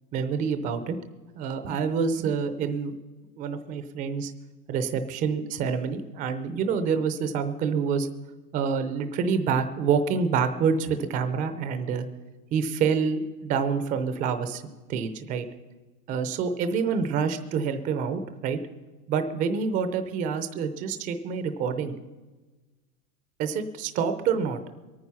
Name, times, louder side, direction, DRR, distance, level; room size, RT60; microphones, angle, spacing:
voice 1, 0.1-1.0 1.3-2.9 3.4-4.3 4.7-8.1 8.5-12.1 12.5-14.6 14.9-15.5 16.1-18.6 19.1-22.0 23.4-24.6, right 6 dB, 20° right, 9 dB, 0.6 m, -27 dB
22.0 x 9.5 x 5.7 m, 1.2 s
supercardioid pair, 160°, 45 cm